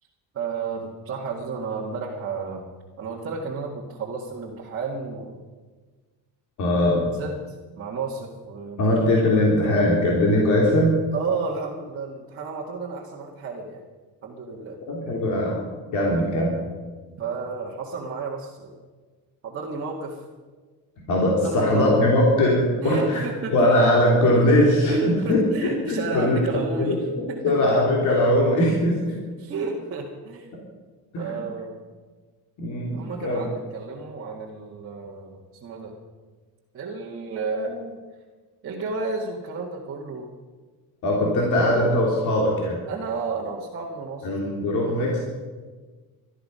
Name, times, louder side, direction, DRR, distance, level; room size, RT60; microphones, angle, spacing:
voice 1, 0.3-2.6 3.0-5.4 7.0-8.9 9.3-9.4 11.1-13.8 14.2-14.8 17.2-18.8 19.4-20.2 21.4-21.9 22.8-23.5 24.9-27.0 27.3-27.5 29.4-30.7 31.2-31.8 32.9-36.0 36.7-38.0 38.6-40.3 42.9-44.3 44.8-45.2, right 4 dB, 35° right, -4 dB, 1.9 m, -32 dB
voice 2, 6.6-7.0 8.8-10.9 14.9-15.6 15.9-16.6 21.1-23.2 23.5-26.4 26.8-29.0 31.1-31.3 32.6-33.5 41.0-42.8 44.2-45.2, left 1 dB, 50° left, -2 dB, 3.2 m, -21 dB
19.5 x 13.0 x 5.6 m, 1.4 s
cardioid pair, 170°, 39 cm